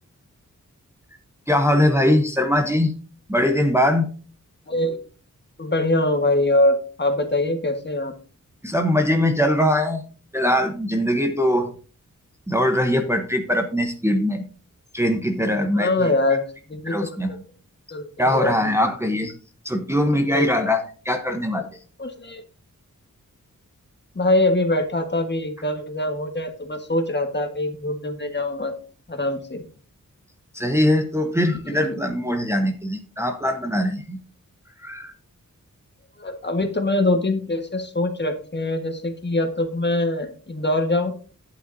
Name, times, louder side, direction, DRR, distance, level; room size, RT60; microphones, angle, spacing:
voice 1, 1.5-2.9 3.3-4.1 8.6-10.0 10.3-11.7 12.5-14.5 14.9-16.1 16.8-17.3 18.2-19.4 19.6-21.7 30.5-34.2 34.8-35.1, left 1 dB, 10° right, 3 dB, 0.8 m, -21 dB
voice 2, 4.7-5.0 5.6-8.1 15.7-17.2 17.9-18.9 20.3-20.5 22.0-22.4 24.1-28.7 29.1-29.6 31.7-32.0 36.2-41.1, left 1 dB, 35° left, 6 dB, 1.4 m, -23 dB
11.0 x 9.2 x 2.6 m, 0.39 s
wide cardioid pair, 120°, 32 cm